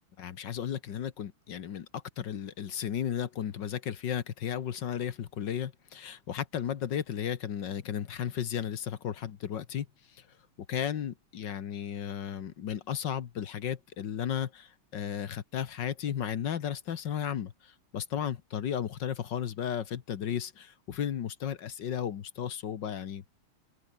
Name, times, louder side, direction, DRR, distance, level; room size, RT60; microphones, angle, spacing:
voice 1, 0.2-9.9 10.2-10.3 10.7-23.2, left 9 dB, 60° left, 1.8 m, -34 dB
open air
omnidirectional pair, 2.3 m